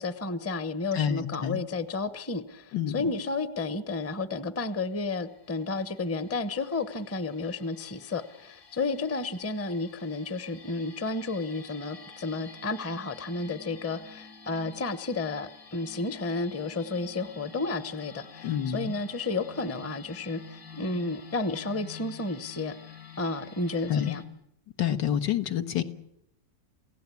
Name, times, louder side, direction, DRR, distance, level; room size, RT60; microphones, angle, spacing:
voice 1, 0.0-22.7 23.2-24.2, left 3 dB, 15° left, 13 dB, 0.6 m, -32 dB
voice 2, 0.9-1.6 2.7-3.1 18.4-18.9 23.9-24.2 24.8-25.8, left 9 dB, 85° left, 8 dB, 2.0 m, -28 dB
sound 1, 4.6-24.3, left 6 dB, 70° left, 3.4 m, -49 dB
28.5 x 16.5 x 8.4 m, 0.79 s
omnidirectional pair, 1.9 m